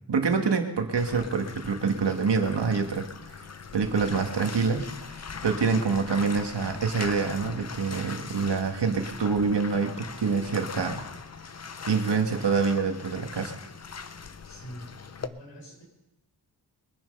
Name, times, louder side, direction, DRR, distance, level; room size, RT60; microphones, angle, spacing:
voice 1, 0.1-3.4 3.7-11.0 11.9-13.6, right 5 dB, 70° right, 4 dB, 1.9 m, -26 dB
Bathtub (filling or washing), 1.0-15.3, left 5 dB, 35° left, 0.7 m, -41 dB
voice 2, 14.4-14.9 15.2-15.8, equal, 90° left, 0 dB, 5.9 m, -43 dB
22.5 x 9.9 x 5.4 m, 0.94 s
wide cardioid pair, 125°, 43 cm